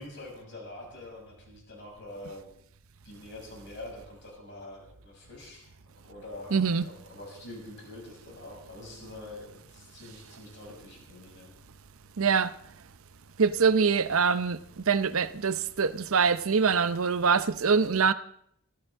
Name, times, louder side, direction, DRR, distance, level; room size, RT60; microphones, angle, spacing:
voice 1, 0.0-2.5 3.0-5.6 6.0-11.5 14.2-14.3, left 2 dB, 50° left, 6.5 m, -45 dB
voice 2, 6.5-6.8 12.2-12.5 13.4-18.1, right 5 dB, 65° right, 0.7 m, -24 dB
24.5 x 14.5 x 3.7 m
head